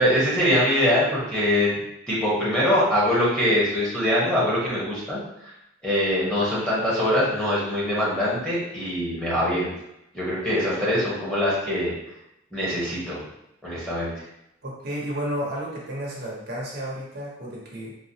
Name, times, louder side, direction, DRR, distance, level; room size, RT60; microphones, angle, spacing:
voice 1, 0.0-1.8 2.1-5.2 5.8-9.7 10.1-11.9 12.5-13.2 13.6-14.1, left 1 dB, 5° left, -8 dB, 1.1 m, -23 dB
voice 2, 14.6-17.9, equal, 55° right, -4 dB, 0.8 m, -32 dB
3.9 x 2.3 x 2.8 m, 0.84 s
head